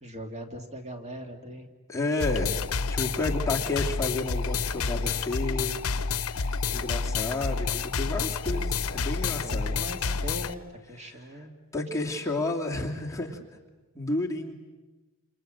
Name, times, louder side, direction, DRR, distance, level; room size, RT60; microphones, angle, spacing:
voice 1, 0.0-1.7 9.4-11.5 12.1-12.2, equal, 30° right, 3 dB, 2.5 m, -40 dB
voice 2, 1.9-2.6 2.9-5.8 6.2-9.7 11.1-11.2 11.7-13.4 13.9-14.5, left 2 dB, 15° left, -1 dB, 2.6 m, -31 dB
sound 1, 2.2-10.5, left 5 dB, 70° left, 0.9 m, -29 dB
28.0 x 27.0 x 7.8 m, 1.2 s
head